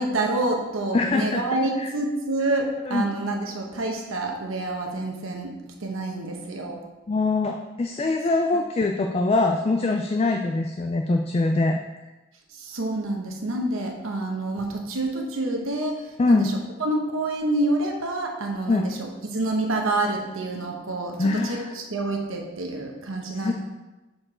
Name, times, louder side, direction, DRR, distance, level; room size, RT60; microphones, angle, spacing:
voice 1, 0.0-6.8 12.5-16.5 16.8-23.5, right 2 dB, 85° right, 2 dB, 1.0 m, -28 dB
voice 2, 0.9-1.4 1.8-1.9 2.9-3.0 7.1-11.8 16.2-16.5 18.7-18.9 21.2-21.7 23.3-23.5, left 3 dB, 30° left, 3 dB, 0.3 m, -23 dB
6.7 x 4.4 x 4.3 m, 1.1 s
head